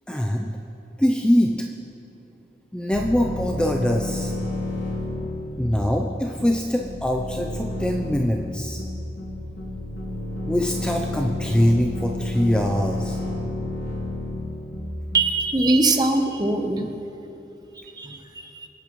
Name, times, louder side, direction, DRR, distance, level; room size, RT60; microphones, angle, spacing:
voice 1, 0.1-0.5 1.0-1.5 2.7-4.3 5.6-8.8 10.5-13.2, equal, 5° left, 1 dB, 0.4 m, -23 dB
sound 1, 2.9-15.4, left 1 dB, 85° left, 2.6 m, -31 dB
voice 2, 15.1-16.9 18.0-18.2 18.6-18.7, right 2 dB, 25° right, 5 dB, 0.8 m, -21 dB
24.5 x 8.6 x 3.0 m, 2.9 s
head